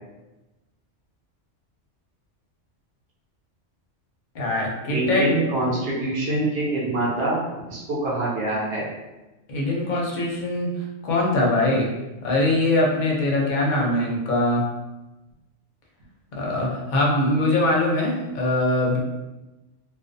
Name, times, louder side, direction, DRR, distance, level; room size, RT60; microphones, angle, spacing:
voice 1, 4.3-5.3 9.5-10.7 11.0-11.9 12.2-14.6 16.3-19.0, left 1 dB, 50° left, -3 dB, 0.6 m, -22 dB
voice 2, 4.9-7.4 7.7-8.9, right 2 dB, 60° right, -5 dB, 0.9 m, -25 dB
2.4 x 2.2 x 2.5 m, 1.1 s
omnidirectional pair, 1.2 m